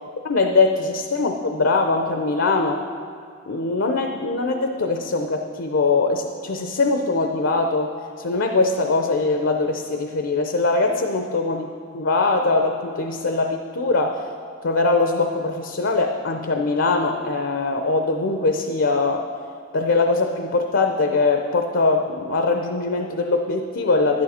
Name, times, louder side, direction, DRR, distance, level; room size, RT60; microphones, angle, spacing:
voice 1, 0.2-2.8 3.5-7.9 8.2-11.7 11.9-14.2 14.6-19.3 19.7-24.2, left 3 dB, 70° left, 4 dB, 0.6 m, -22 dB
11.0 x 9.6 x 4.3 m, 2.2 s
head